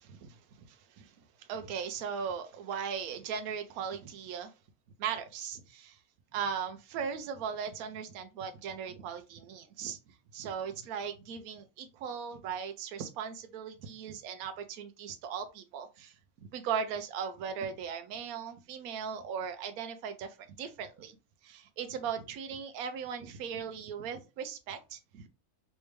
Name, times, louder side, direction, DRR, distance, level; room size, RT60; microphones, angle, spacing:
voice 1, 0.0-0.4 0.7-1.1 1.4-4.5 5.0-6.0 6.3-10.0 10.3-16.1 16.5-21.2 21.4-25.3, right 7 dB, 80° right, 1.1 m, -38 dB
3.4 x 3.2 x 3.1 m
omnidirectional pair, 1.5 m